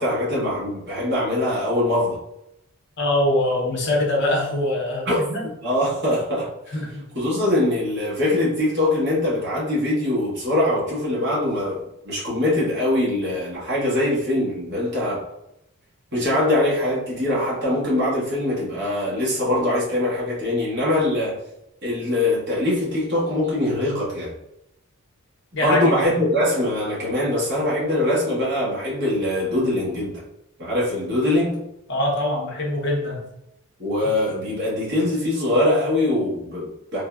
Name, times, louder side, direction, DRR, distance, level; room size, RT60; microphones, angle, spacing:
voice 1, 0.0-2.2 5.1-5.2 5.6-6.8 7.1-15.2 16.1-21.4 21.8-24.3 25.6-30.2 30.6-31.6 33.8-37.0, left 1 dB, 50° right, -6 dB, 1.0 m, -22 dB
voice 2, 3.0-5.4 6.7-7.1 25.5-25.9 31.9-33.3, left 1 dB, 50° left, -1 dB, 0.6 m, -23 dB
3.4 x 2.0 x 2.3 m, 0.84 s
head